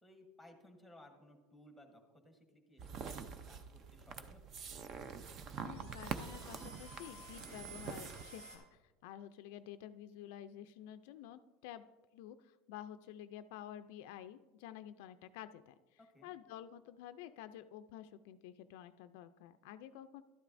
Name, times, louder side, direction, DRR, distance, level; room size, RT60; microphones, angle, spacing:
voice 1, 0.0-4.5 16.0-16.3, left 1 dB, ahead, 4 dB, 1.3 m, -60 dB
sound 1, 2.8-8.2, right 6 dB, 35° right, 0.5 m, -46 dB
sound 2, 4.3-8.6, right 2 dB, 80° right, 3.2 m, -54 dB
voice 2, 5.6-11.8 12.1-20.2, left 11 dB, 65° left, 10 dB, 0.4 m, -51 dB
12.0 x 11.5 x 2.6 m, 1.2 s
supercardioid pair, 155°, 0 cm